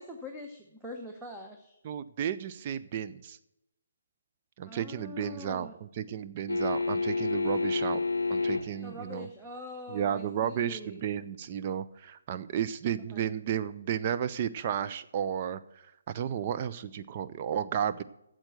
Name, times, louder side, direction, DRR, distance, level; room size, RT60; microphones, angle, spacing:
voice 1, 0.0-1.8 4.7-5.7 8.8-11.0 13.1-13.3, left 1 dB, 5° right, 1 dB, 0.9 m, -43 dB
voice 2, 1.8-3.4 4.6-8.0 8.3-9.3 9.9-15.6 16.1-18.0, right 9 dB, 35° right, 11 dB, 0.4 m, -33 dB
sound 1, 6.5-8.9 11.4-11.5, left 3 dB, 75° left, 0.6 m, -29 dB
8.8 x 7.6 x 7.8 m, 0.83 s
figure-of-eight pair, 140°, 0 cm